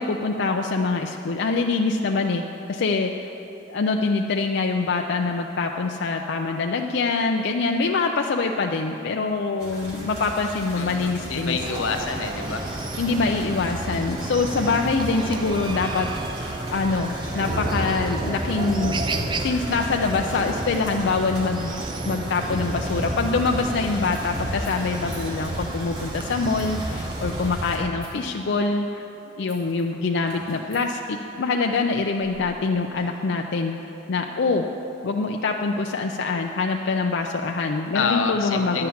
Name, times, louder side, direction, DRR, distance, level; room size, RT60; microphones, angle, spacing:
voice 1, 0.0-2.4 2.7-3.3 3.7-11.6 13.0-16.1 16.7-29.0 29.4-33.8 34.1-34.7 35.0-38.9, left 4 dB, 60° left, 2 dB, 0.4 m, -24 dB
sound 1, 9.6-27.8, right 1 dB, 55° right, 2.7 m, -33 dB
voice 2, 10.8-12.6 37.9-38.9, left 5 dB, 85° left, 4 dB, 0.9 m, -27 dB
Chicken rooster, 11.6-27.5, right 2 dB, 25° right, 0.4 m, -33 dB
sound 2, 24.1-25.4 26.5-26.9 28.0-28.4 29.5-29.8 30.2-30.9 31.8-33.2, right 1 dB, 90° right, 3.0 m, -48 dB
10.5 x 5.7 x 8.5 m, 2.9 s
head